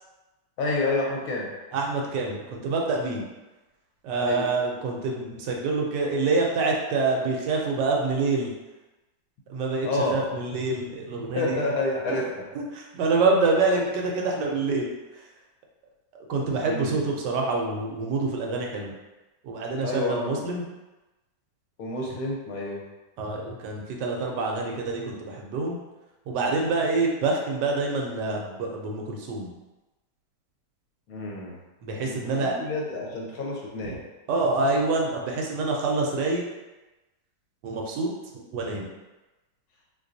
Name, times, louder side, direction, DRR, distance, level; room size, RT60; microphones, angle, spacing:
voice 1, 0.6-1.5 4.2-4.5 9.8-10.2 11.3-12.2 16.7-16.9 19.8-20.4 21.8-22.8 31.1-31.5 32.1-34.0, left 2 dB, 65° left, -2 dB, 1.1 m, -29 dB
voice 2, 1.7-3.2 4.0-8.5 9.5-11.6 12.1-12.2 12.5-15.2 16.3-18.9 19.4-20.7 23.2-25.8 26.3-29.5 31.8-32.5 33.9-34.0 34.3-36.4 37.6-38.1 38.3-38.9, right 3 dB, 75° right, 0 dB, 1.2 m, -26 dB
3.7 x 2.8 x 2.6 m, 1.1 s
omnidirectional pair, 1.9 m